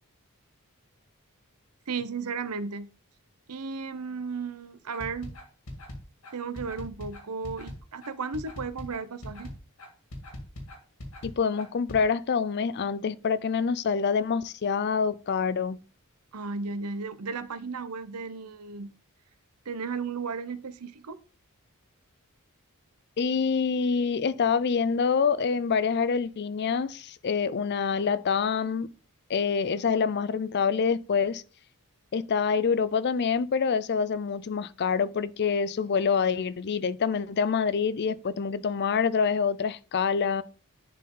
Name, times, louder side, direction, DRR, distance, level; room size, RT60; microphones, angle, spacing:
voice 1, 1.9-2.9 3.5-5.3 6.3-9.5 16.3-18.9 19.7-21.2, right 4 dB, 90° right, 0.8 m, -34 dB
sound 1, 4.9-12.0, left 1 dB, 70° left, 2.0 m, -41 dB
voice 2, 11.2-15.8 23.2-28.9 29.3-31.4 32.1-40.4, left 6 dB, 50° left, 0.4 m, -26 dB
11.0 x 4.2 x 3.8 m
head